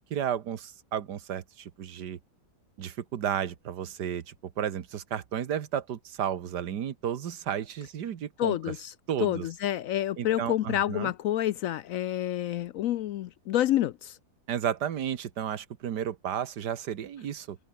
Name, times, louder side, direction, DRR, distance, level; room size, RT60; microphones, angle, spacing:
voice 1, 0.0-2.2 2.8-8.7 9.1-9.5 10.2-11.1 14.5-17.6, right 9 dB, 85° right, 1.8 m, -33 dB
voice 2, 8.4-8.9 9.2-14.2, left 12 dB, 70° left, 0.8 m, -28 dB
omnidirectional pair, 1.7 m